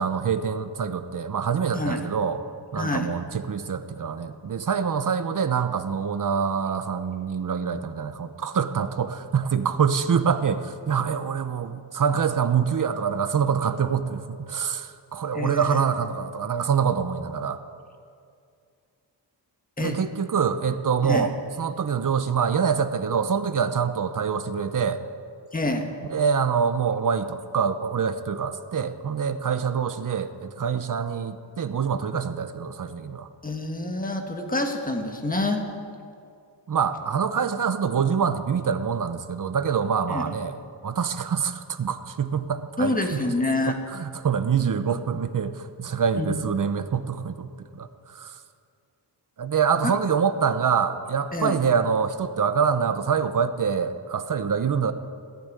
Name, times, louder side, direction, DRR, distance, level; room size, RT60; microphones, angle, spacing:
voice 1, 0.0-2.4 2.7-17.6 19.8-21.3 21.6-25.0 26.1-33.3 36.7-43.2 43.7-48.4 49.4-54.9, right 6 dB, 45° right, 10 dB, 0.9 m, -25 dB
voice 2, 2.8-3.1 15.3-15.8 19.8-20.0 21.0-21.3 25.5-25.9 33.4-35.7 40.1-40.2 42.8-43.7 46.2-46.4 49.8-50.0 51.3-51.6, left 2 dB, 20° left, 4 dB, 1.5 m, -27 dB
15.0 x 10.5 x 9.2 m, 2.3 s
wide cardioid pair, 145°, 43 cm